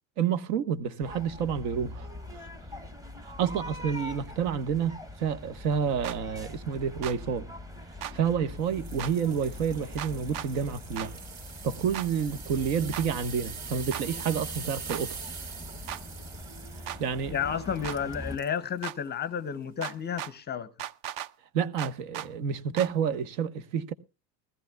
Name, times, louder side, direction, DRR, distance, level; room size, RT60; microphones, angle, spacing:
voice 1, 0.2-2.1 3.2-7.5 8.1-11.1 11.6-15.2 17.0-17.3 21.5-23.9, right 7 dB, 75° right, 1.3 m, -29 dB
sound 1, 1.0-18.4, left 1 dB, 5° right, 0.8 m, -43 dB
sound 2, 6.0-6.2 7.0-7.2 8.0-8.1 9.0-9.1 10.0-10.5 11.0-11.1 11.9-12.1 12.9-13.1 13.9-14.0 14.9-15.0 15.9-16.0 16.9-17.0 17.8-18.0 18.8-19.0 19.8-20.3 20.8-21.3 21.8-22.3 22.8-22.9, right 11 dB, 50° right, 0.6 m, -36 dB
sound 3, 8.7-18.6 19.1-19.3 19.8-19.9, right 6 dB, 35° right, 2.1 m, -43 dB
voice 2, 17.3-20.7, left 7 dB, 20° left, 0.6 m, -32 dB
21.0 x 14.5 x 2.2 m
supercardioid pair, 130°, 48 cm